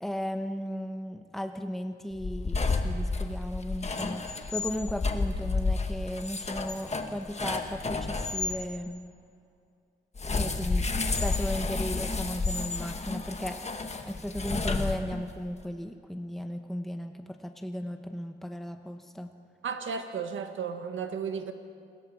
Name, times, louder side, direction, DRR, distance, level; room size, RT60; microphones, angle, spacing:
voice 1, 0.0-9.0 10.3-13.8 14.1-19.3, equal, ahead, 5 dB, 1.0 m, -36 dB
sound 1, 2.1-8.6 10.2-15.4, left 3 dB, 35° left, 1.6 m, -31 dB
voice 2, 19.6-21.5, right 6 dB, 85° right, 6 dB, 1.6 m, -34 dB
28.5 x 21.0 x 4.7 m, 2.3 s
cardioid pair, 95°, 20 cm